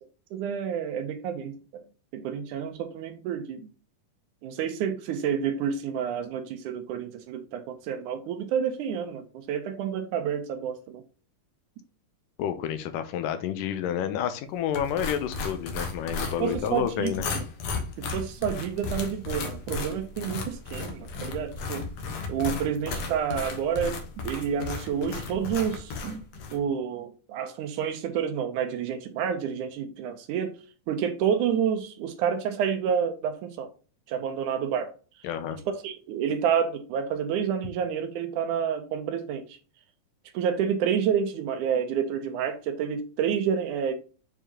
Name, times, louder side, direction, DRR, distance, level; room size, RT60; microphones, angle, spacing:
voice 1, 0.3-1.8 2.1-3.7 4.4-11.0 16.4-17.4 18.0-21.9 22.3-26.2 26.5-30.5 30.9-33.7 34.1-34.9 35.8-39.5 40.3-44.0, right 8 dB, 75° right, 2.1 m, -29 dB
voice 2, 12.4-17.3 35.2-35.6, left 9 dB, 80° left, 2.3 m, -29 dB
sound 1, 14.7-26.6, left 4 dB, 60° left, 2.0 m, -35 dB
6.9 x 4.7 x 2.9 m
omnidirectional pair, 3.9 m